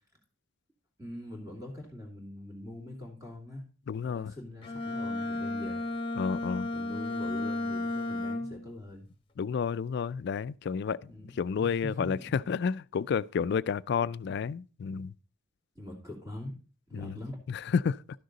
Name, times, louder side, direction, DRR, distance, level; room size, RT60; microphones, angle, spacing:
voice 1, 1.0-3.6 4.0-5.8 6.7-9.1 11.1-12.4 15.7-16.5 16.9-17.4, left 1 dB, 15° right, 2.6 m, -43 dB
voice 2, 3.9-4.3 6.2-6.7 9.4-11.1 11.4-15.1 16.9-17.2 17.5-18.0, left 6 dB, 60° left, 0.3 m, -30 dB
Bowed string instrument, 4.6-8.7, left 2 dB, 25° left, 1.2 m, -33 dB
12.0 x 6.5 x 4.0 m
head